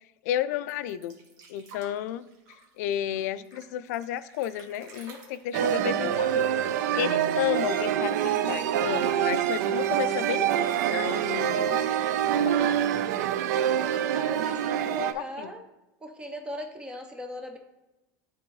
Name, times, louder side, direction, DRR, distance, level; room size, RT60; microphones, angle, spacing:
voice 1, 0.2-1.1 1.5-2.3 2.8-6.7 6.9-11.7 12.3-12.8 14.8-15.0 15.4-15.5, left 11 dB, 65° left, 15 dB, 0.3 m, -32 dB
sound 1, 0.7-7.1 7.4-7.5 7.8-8.5 9.3-9.4, right 3 dB, 45° right, 1.4 m, -52 dB
sound 2, 5.5-15.1, right 10 dB, 70° right, 0.4 m, -26 dB
voice 2, 13.9-15.7 16.0-17.6, left 1 dB, 10° right, 4 dB, 0.4 m, -38 dB
10.5 x 3.5 x 3.1 m, 1.0 s
supercardioid pair, 165°, 10 cm